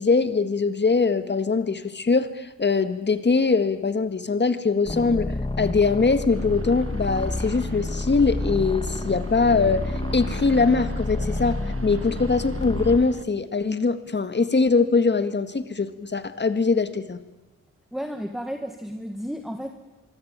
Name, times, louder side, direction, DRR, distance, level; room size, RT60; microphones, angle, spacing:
voice 1, 0.0-5.3 5.6-17.2, left 4 dB, 35° left, 11 dB, 1.8 m, -22 dB
sound 1, 4.9-13.1, left 2 dB, 15° left, 1.5 m, -29 dB
sound 2, 6.3-13.2, right 5 dB, 45° right, 1.4 m, -41 dB
voice 2, 17.9-19.7, equal, ahead, 5 dB, 1.8 m, -32 dB
25.0 x 24.0 x 9.0 m, 1.1 s
wide cardioid pair, 120°, 31 cm